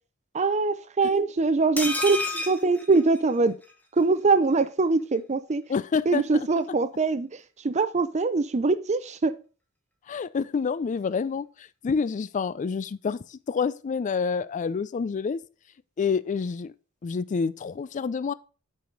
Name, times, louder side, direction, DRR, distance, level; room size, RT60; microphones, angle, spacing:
voice 1, 0.3-3.5 3.9-5.6 6.1-7.3 7.6-9.3, right 3 dB, 35° right, 0.5 m, -23 dB
sound 1, 1.8-3.7 4.0-4.1 4.4-4.5, left 2 dB, 10° left, 1.1 m, -31 dB
voice 2, 5.7-6.2 10.1-15.4 16.0-16.7 17.0-18.3, left 5 dB, 35° left, 0.3 m, -28 dB
8.3 x 4.8 x 3.8 m
head